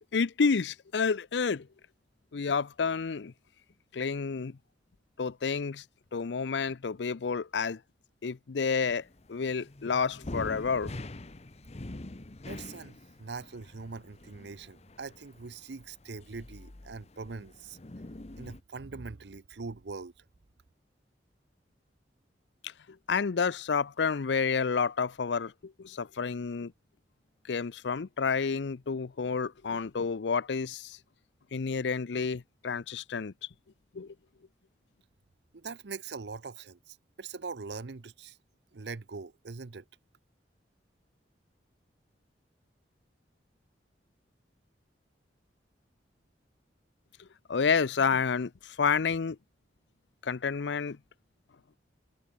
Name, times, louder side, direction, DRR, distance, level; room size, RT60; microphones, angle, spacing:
voice 1, 0.1-1.7 2.3-3.3 3.9-4.6 5.2-5.8 6.1-7.8 8.2-9.0 9.3-10.9 22.6-22.7 23.1-26.7 27.5-31.0 31.5-33.3 33.9-34.1 47.5-49.4 50.2-51.0, left 5 dB, 85° left, 0.6 m, -29 dB
sound 1, 8.8-18.6, left 1 dB, 40° left, 1.0 m, -45 dB
voice 2, 12.5-17.8 18.4-20.2 35.5-38.4 38.7-39.8, right 4 dB, 70° right, 0.7 m, -42 dB
head